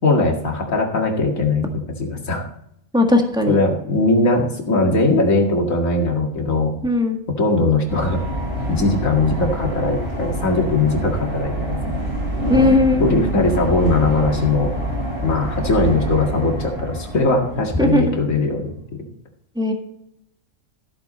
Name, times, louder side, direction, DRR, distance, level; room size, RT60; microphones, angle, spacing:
voice 1, 0.0-1.6 2.0-2.5 3.5-6.7 7.4-8.2 8.7-12.0 13.0-14.7 15.2-18.7, left 2 dB, 70° left, 1 dB, 2.4 m, -20 dB
voice 2, 2.9-3.6 6.8-7.2 12.5-13.1 17.8-18.1 19.6-19.7, left 1 dB, 5° right, 3 dB, 1.6 m, -17 dB
sound 1, 7.9-18.1, equal, 45° right, 5.2 m, -26 dB
14.0 x 8.2 x 4.2 m, 0.74 s
omnidirectional pair, 1.4 m